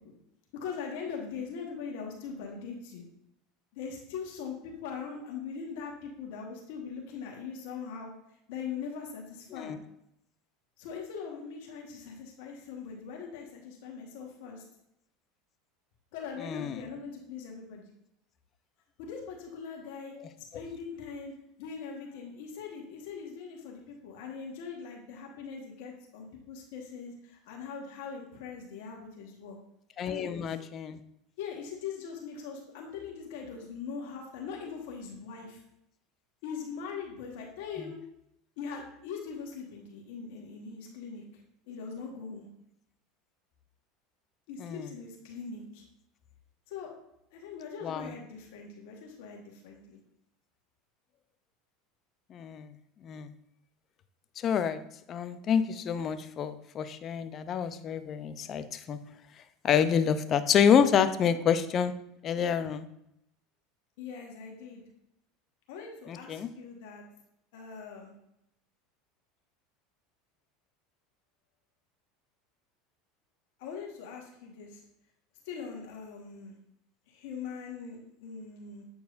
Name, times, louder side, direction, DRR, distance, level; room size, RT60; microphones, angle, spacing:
voice 1, 0.6-3.0 3.7-8.1 8.5-9.7 10.8-14.6 16.1-17.9 19.0-20.1 20.5-21.3 21.6-29.6 30.0-30.5 31.4-35.6 36.4-38.0 38.6-41.2 41.7-42.5 44.5-45.8 46.7-46.9 47.3-50.0 64.0-64.8 65.7-67.0 67.5-68.1 73.6-74.7 75.5-76.5 77.1-78.8, left 6 dB, 75° left, 0 dB, 1.4 m, -41 dB
voice 2, 16.4-16.9 20.2-20.3 30.0-31.0 37.8-37.9 44.6-44.9 47.8-48.1 52.3-52.7 53.0-53.3 54.4-54.8 55.1-59.0 59.6-61.9 62.2-62.9 66.1-66.5, left 7 dB, 40° left, 11 dB, 0.5 m, -28 dB
8.2 x 4.6 x 2.5 m, 0.79 s
hypercardioid pair, 100°, 0 cm